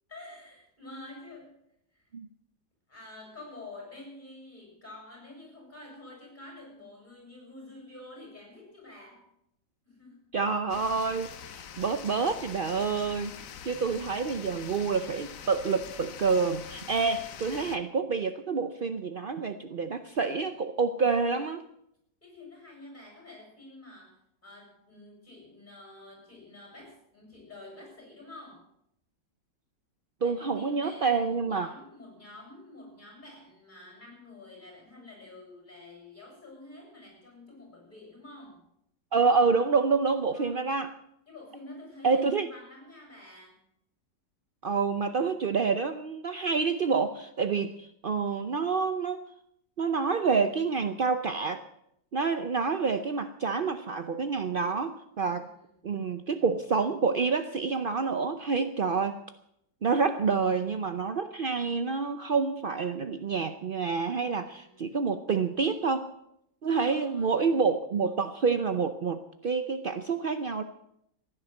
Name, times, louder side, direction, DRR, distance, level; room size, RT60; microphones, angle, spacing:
voice 1, 0.1-1.6 1.9-2.1 2.9-9.2 9.8-10.2 12.7-13.0 22.2-28.7 30.2-38.7 40.3-40.6 41.3-43.6 55.2-55.7 64.4-65.1 66.6-67.5, left 2 dB, 25° left, 0 dB, 7.5 m, -48 dB
voice 2, 10.3-13.3 13.7-21.6 30.2-31.7 39.1-41.0 42.0-42.5 44.6-49.2 49.8-51.6 52.1-55.5 55.8-59.2 59.8-66.1 66.6-70.6, right 5 dB, 65° right, 9 dB, 0.5 m, -28 dB
sound 1, 10.7-17.8, left 8 dB, 55° left, 1.1 m, -44 dB
15.5 x 10.0 x 7.9 m, 0.76 s
omnidirectional pair, 1.9 m